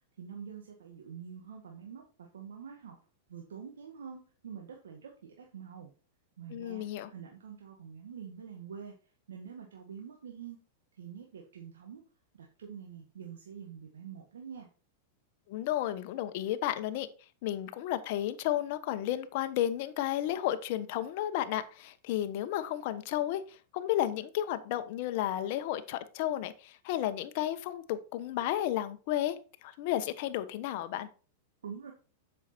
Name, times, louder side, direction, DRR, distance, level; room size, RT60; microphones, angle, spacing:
voice 1, 0.2-3.0 3.3-5.9 6.4-8.9 9.3-10.6 11.0-12.0 12.3-14.7 31.6-31.9, right 7 dB, 85° right, 1.7 m, -46 dB
voice 2, 6.5-7.1 15.5-17.1 17.4-29.3 29.6-31.1, left 12 dB, 55° left, 1.1 m, -32 dB
8.0 x 6.5 x 4.4 m
hypercardioid pair, 115°, 0 cm